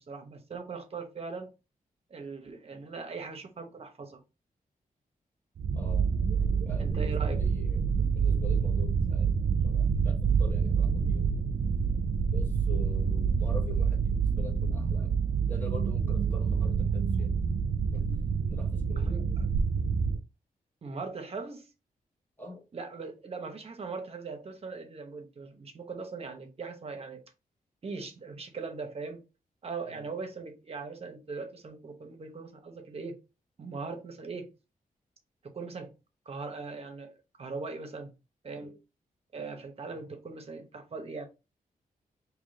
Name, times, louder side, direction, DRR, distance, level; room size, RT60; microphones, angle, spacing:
voice 1, 0.0-1.5 2.1-4.2 6.4-7.4 19.0-19.5 20.8-21.7 22.7-27.2 27.8-29.2 29.6-33.2 33.6-34.5 35.4-35.9 36.3-37.1 37.4-38.1 38.4-38.7 39.3-41.3, right 4 dB, 45° right, 0.9 m, -40 dB
sound 1, 5.6-20.2, right 6 dB, 70° right, 0.6 m, -27 dB
voice 2, 5.7-6.1 6.5-7.9 8.1-9.4 9.6-11.3 12.3-15.1 15.5-17.3 17.9-18.0 18.5-19.2 22.4-22.6 29.8-30.1 38.6-38.8, left 2 dB, 15° left, 1.2 m, -45 dB
3.7 x 2.9 x 3.8 m
wide cardioid pair, 160°, 15 cm